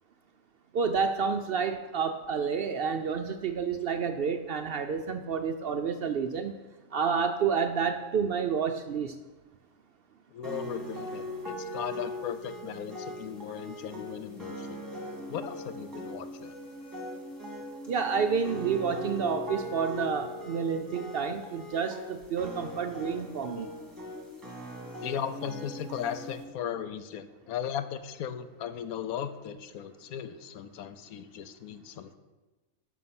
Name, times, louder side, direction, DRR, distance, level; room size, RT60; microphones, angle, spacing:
voice 1, 0.7-6.5 6.9-9.1 17.9-23.7, right 6 dB, 65° right, 7 dB, 0.5 m, -29 dB
voice 2, 10.3-14.8 15.3-16.5 25.0-32.2, left 9 dB, 85° left, 11 dB, 1.1 m, -37 dB
sound 1, 10.4-26.4, left 1 dB, 15° right, 1.6 m, -40 dB
9.5 x 6.2 x 5.8 m, 1.2 s
omnidirectional pair, 1.5 m